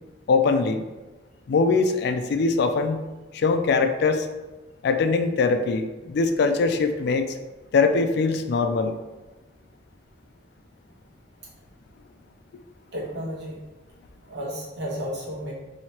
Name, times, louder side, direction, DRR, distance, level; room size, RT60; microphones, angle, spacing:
voice 1, 0.3-0.8 1.5-3.0 3.3-4.3 4.8-7.3 7.7-9.0, left 4 dB, 60° left, 8 dB, 0.3 m, -22 dB
voice 2, 12.9-13.7 14.3-15.5, equal, 65° right, -4 dB, 1.2 m, -32 dB
2.9 x 2.8 x 4.4 m, 1.1 s
head